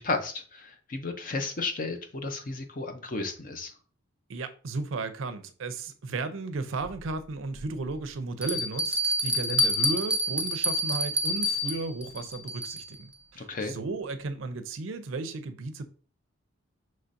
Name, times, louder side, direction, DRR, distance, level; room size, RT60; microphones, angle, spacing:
voice 1, 0.0-3.7 13.3-13.8, left 3 dB, 45° left, 0.6 m, -33 dB
voice 2, 4.3-15.8, right 3 dB, 80° right, 0.5 m, -34 dB
Bell, 6.8-6.9 7.6-7.7 8.4-13.0, equal, 5° right, 0.4 m, -28 dB
5.6 x 3.1 x 2.6 m
head